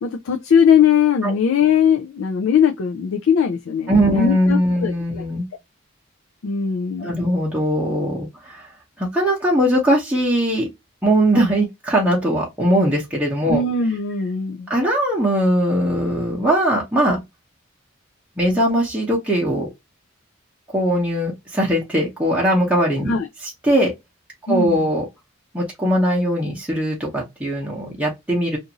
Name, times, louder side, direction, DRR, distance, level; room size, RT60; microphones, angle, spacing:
voice 1, 0.0-5.2 6.4-7.2 13.5-14.7 23.1-23.3 24.5-24.8, left 7 dB, 75° left, 0.4 m, -19 dB
voice 2, 3.9-5.5 7.0-8.7 9.0-10.7 11.0-13.6 14.7-17.2 18.4-19.7 20.7-23.1 23.6-23.9 24.5-25.0 25.5-28.6, equal, 5° right, 0.8 m, -20 dB
2.5 x 2.5 x 2.8 m
head